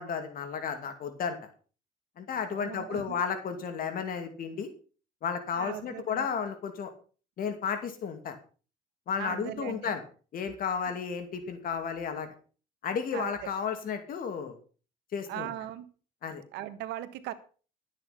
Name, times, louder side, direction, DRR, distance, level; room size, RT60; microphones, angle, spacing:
voice 1, 0.0-1.4 2.2-4.7 5.2-6.9 7.4-8.4 9.1-10.0 10.3-12.3 12.8-14.6 15.1-15.5 16.2-16.4, left 6 dB, 55° left, 8 dB, 2.5 m, -33 dB
voice 2, 2.5-3.2 5.5-6.3 9.2-10.0 13.1-13.3 15.3-15.9 16.5-17.3, right 13 dB, 85° right, 11 dB, 1.5 m, -39 dB
12.5 x 9.0 x 5.8 m, 0.38 s
cardioid pair, 110°, 17 cm